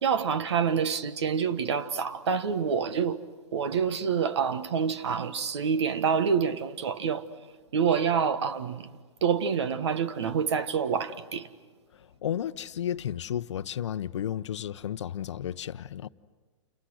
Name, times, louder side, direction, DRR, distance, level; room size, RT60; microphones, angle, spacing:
voice 1, 0.0-3.2 3.5-7.3 7.7-8.9 9.2-11.5, right 6 dB, 60° right, 1.4 m, -27 dB
voice 2, 12.0-16.1, left 10 dB, 65° left, 0.8 m, -33 dB
29.5 x 29.5 x 6.3 m
hypercardioid pair, 170°, 16 cm